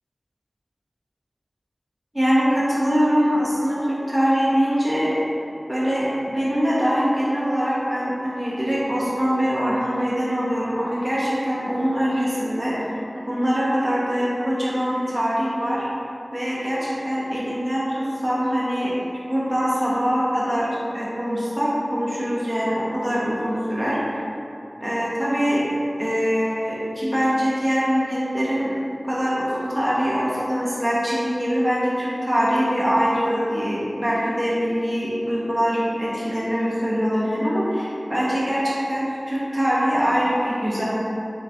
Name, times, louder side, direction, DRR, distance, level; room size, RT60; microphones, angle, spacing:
voice 1, 2.1-5.1 5.7-12.7 13.3-15.9 16.3-20.7 20.9-24.0 24.8-25.6 26.0-28.7 29.0-40.8, equal, 10° right, -8 dB, 1.1 m, -23 dB
3.9 x 3.0 x 3.5 m, 2.8 s
wide cardioid pair, 45°, 0 cm